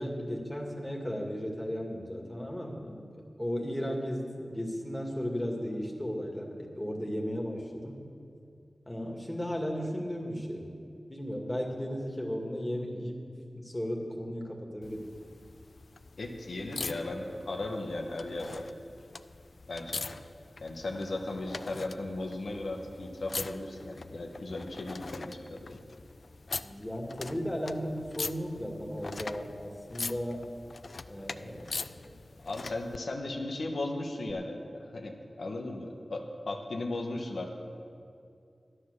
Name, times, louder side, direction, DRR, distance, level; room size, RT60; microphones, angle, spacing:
voice 1, 0.0-8.0 8.9-10.7 11.1-13.2 13.6-15.1 26.6-30.5 31.1-32.2, equal, 20° left, -1 dB, 2.1 m, -35 dB
sound 1, 14.8-33.0 34.3-34.4, left 3 dB, 70° left, 0.4 m, -43 dB
voice 2, 16.2-18.6 19.7-20.0 20.6-25.8 32.4-37.5, left 2 dB, 85° left, 1 dB, 1.3 m, -36 dB
12.0 x 9.8 x 6.6 m, 2.4 s
cardioid pair, 40°, 0 cm